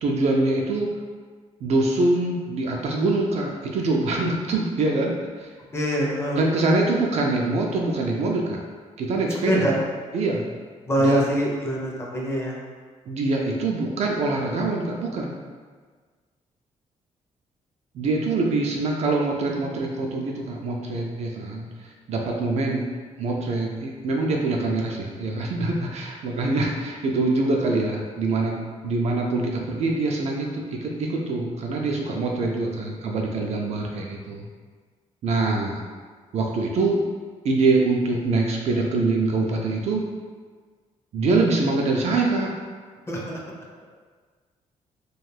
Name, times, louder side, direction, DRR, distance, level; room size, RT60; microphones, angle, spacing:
voice 1, 0.0-0.9 1.6-5.5 6.4-8.6 9.0-9.7 10.1-10.4 11.0-11.3 13.1-15.3 17.9-21.7 22.1-22.9 23.2-28.6 28.8-34.5 35.2-35.8 36.3-37.0 37.4-40.0 41.1-42.5, right 2 dB, 60° right, 0 dB, 0.4 m, -24 dB
voice 2, 5.7-6.4 9.5-9.7 10.9-12.5 43.1-43.4, equal, 20° left, -3 dB, 0.5 m, -24 dB
2.4 x 2.2 x 3.2 m, 1.5 s
cardioid pair, 125°, 13 cm